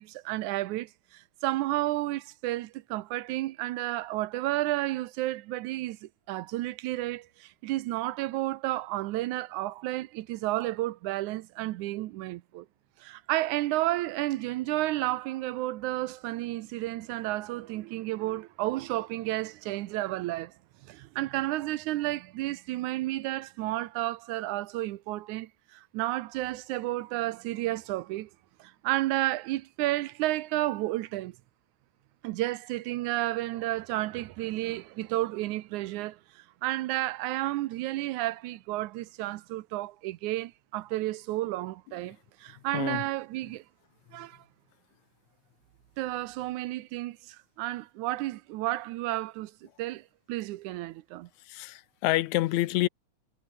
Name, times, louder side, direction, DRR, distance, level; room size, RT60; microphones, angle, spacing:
voice 1, 0.0-12.7 13.0-20.5 20.8-28.3 28.6-31.4 32.2-43.6 44.1-44.4 46.0-51.3, right 17 dB, 90° right, 2.2 m, -32 dB
voice 2, 51.5-52.9, left 17 dB, 80° left, 2.0 m, -27 dB
omnidirectional pair, 3.3 m